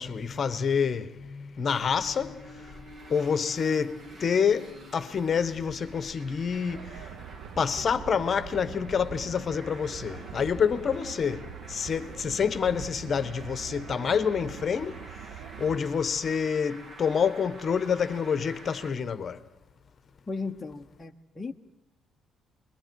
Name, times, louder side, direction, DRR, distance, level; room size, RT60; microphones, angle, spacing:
voice 1, 0.0-2.8 3.1-7.1 7.6-15.0 15.6-19.4, left 6 dB, 40° left, 1.2 m, -28 dB
Traffic noise roadway noise, 1.7-18.9, right 1 dB, 40° right, 2.9 m, -47 dB
sound 1, 6.7-15.8, right 10 dB, 65° right, 0.8 m, -44 dB
voice 2, 20.3-21.5, left 4 dB, 20° left, 1.0 m, -36 dB
29.0 x 22.5 x 4.7 m
cardioid pair, 110°, 0 cm